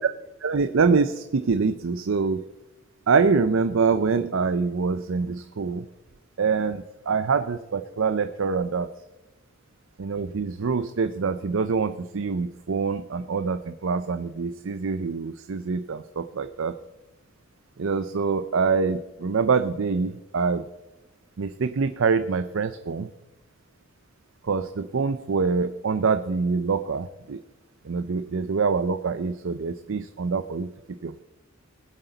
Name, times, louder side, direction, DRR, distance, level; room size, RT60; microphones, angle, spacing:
voice 1, 0.4-2.4 3.1-5.8 6.4-8.9 10.0-16.7 17.8-20.6 21.4-23.1 24.5-27.4 27.9-30.7 31.0-31.2, right 5 dB, 65° right, 10 dB, 0.5 m, -25 dB
21.0 x 7.9 x 4.0 m, 1.0 s
head